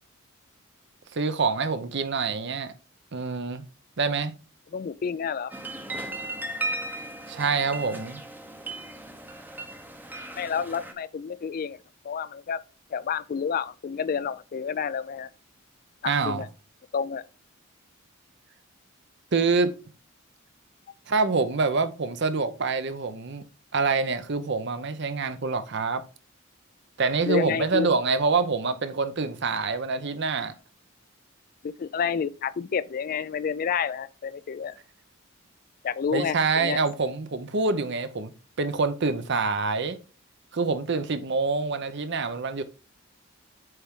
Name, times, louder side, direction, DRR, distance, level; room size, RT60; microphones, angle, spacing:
voice 1, 1.1-2.7 3.1-3.6 4.0-4.3 7.3-8.2 16.0-16.5 19.3-19.7 21.1-23.4 23.7-26.0 27.0-30.5 36.1-38.3 38.6-40.0 40.5-42.6, right 4 dB, 55° right, 0.7 m, -26 dB
voice 2, 4.7-5.5 10.4-11.8 12.0-12.6 12.9-15.3 16.0-16.5 16.9-17.2 27.3-27.9 31.6-34.8 35.8-36.8, left 6 dB, 45° left, 0.3 m, -29 dB
sound 1, 5.5-10.9, right 2 dB, 10° right, 0.7 m, -36 dB
7.9 x 4.6 x 3.6 m
head